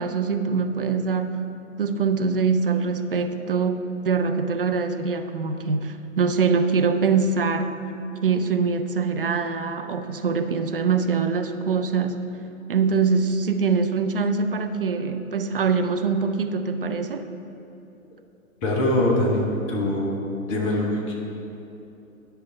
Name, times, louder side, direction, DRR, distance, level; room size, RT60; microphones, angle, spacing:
voice 1, 0.0-1.5 1.8-7.8 8.2-12.2 12.7-17.3, right 5 dB, 45° right, 8 dB, 0.4 m, -23 dB
voice 2, 18.6-20.1 20.5-21.2, left 1 dB, 15° left, -1 dB, 0.9 m, -23 dB
9.9 x 5.4 x 4.4 m, 2.8 s
figure-of-eight pair, 120°, 42 cm